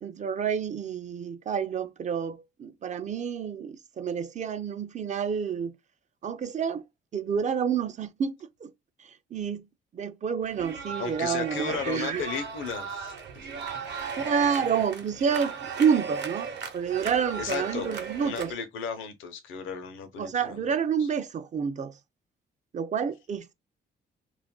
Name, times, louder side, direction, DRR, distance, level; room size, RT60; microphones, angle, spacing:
voice 1, 0.0-5.7 6.2-6.8 7.1-8.3 8.6-8.7 9.0-9.7 9.9-12.2 14.2-16.5 16.7-18.5 20.2-22.0 22.7-23.5, right 7 dB, 40° right, 0.4 m, -29 dB
sound 1, 10.4-18.5, right 6 dB, 60° right, 0.8 m, -36 dB
voice 2, 11.0-13.1 17.4-20.6 21.0-21.1, left 6 dB, 80° left, 0.7 m, -35 dB
2.5 x 2.2 x 3.6 m
supercardioid pair, 70°, 20 cm